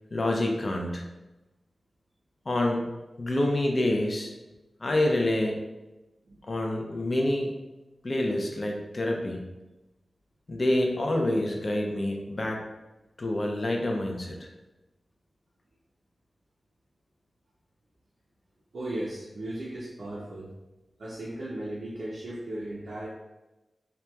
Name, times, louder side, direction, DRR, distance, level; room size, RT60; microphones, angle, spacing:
voice 1, 0.1-1.1 2.5-2.8 3.2-4.3 4.8-5.7 6.5-7.5 8.0-9.4 10.5-12.6 13.2-14.5, left 1 dB, 50° left, 1 dB, 0.4 m, -27 dB
voice 2, 18.7-20.5 21.0-23.1, right 1 dB, 85° right, -7 dB, 0.4 m, -36 dB
2.8 x 2.2 x 2.2 m, 1.0 s
wide cardioid pair, 65°, 0 cm